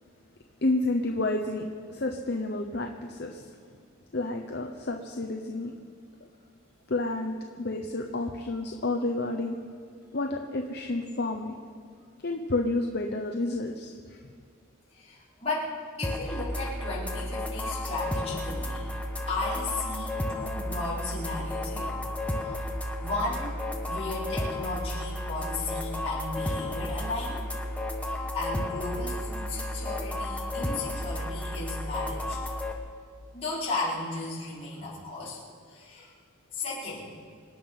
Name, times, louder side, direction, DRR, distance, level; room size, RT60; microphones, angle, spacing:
voice 1, 0.6-3.5 4.1-5.7 6.9-9.6 10.1-11.5 12.2-14.2, left 2 dB, 50° left, 3 dB, 0.9 m, -30 dB
voice 2, 14.9-15.7 16.0-18.9 19.3-22.0 22.4-22.6 23.0-27.4 28.0-32.4 33.3-35.4 35.7-36.1 36.5-37.2, left 2 dB, 30° left, -8 dB, 5.2 m, -35 dB
sound 1, 16.0-32.7, left 1 dB, 5° left, 1.2 m, -33 dB
26.5 x 9.4 x 5.6 m, 2.1 s
head